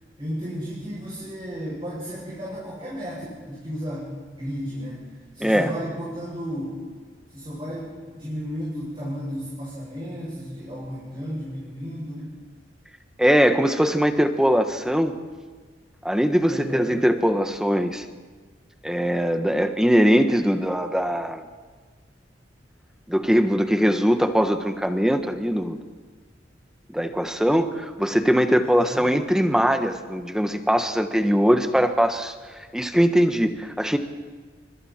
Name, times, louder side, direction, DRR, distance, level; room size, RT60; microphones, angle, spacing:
voice 1, 0.2-6.9 7.3-12.3 16.5-17.0 28.6-29.1, equal, 30° right, -7 dB, 7.5 m, -33 dB
voice 2, 5.4-5.7 13.2-15.1 16.0-18.0 18.8-21.4 23.1-25.8 26.9-32.3 32.7-34.0, equal, 5° right, 6 dB, 1.3 m, -21 dB
29.5 x 25.5 x 4.5 m, 1.4 s
head